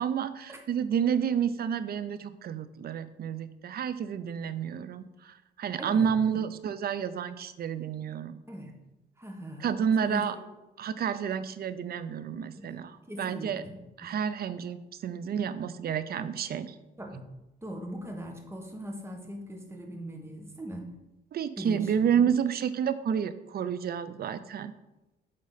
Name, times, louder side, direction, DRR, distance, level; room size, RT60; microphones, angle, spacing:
voice 1, 0.0-8.4 9.6-10.4 10.8-13.6 14.0-16.7 21.3-24.7, right 8 dB, 50° right, 13 dB, 0.5 m, -30 dB
voice 2, 5.8-6.4 8.5-8.7 9.2-9.7 10.0-10.4 12.6-14.1 17.0-17.3 17.6-20.9 21.6-22.3, equal, 15° right, 2 dB, 1.4 m, -40 dB
8.6 x 3.8 x 4.1 m, 0.99 s
cardioid pair, 90°, 20 cm